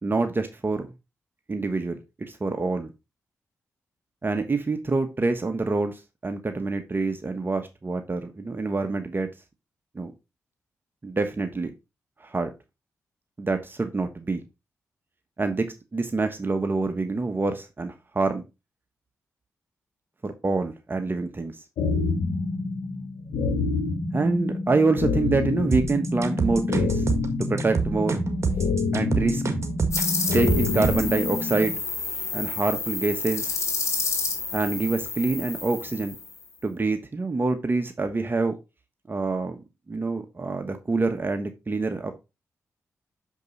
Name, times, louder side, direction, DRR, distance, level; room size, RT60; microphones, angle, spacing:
voice 1, 0.0-0.9 1.5-2.9 4.2-9.3 9.9-10.1 11.0-11.7 12.2-12.5 13.4-14.4 15.4-15.6 15.9-18.4 20.2-21.6 24.1-27.0 27.5-28.2 28.9-29.4 30.3-31.8 32.3-33.5 34.5-36.1 36.6-38.5 39.1-39.6 39.9-42.1, right 3 dB, 35° right, 6 dB, 1.2 m, -26 dB
sound 1, 21.8-31.7, left 3 dB, 85° left, 1.4 m, -27 dB
sound 2, 25.7-31.1, right 5 dB, 50° right, 1.6 m, -27 dB
sound 3, 29.9-36.4, left 4 dB, 55° left, 2.5 m, -30 dB
6.7 x 5.3 x 4.0 m, 0.26 s
supercardioid pair, 45°, 6 cm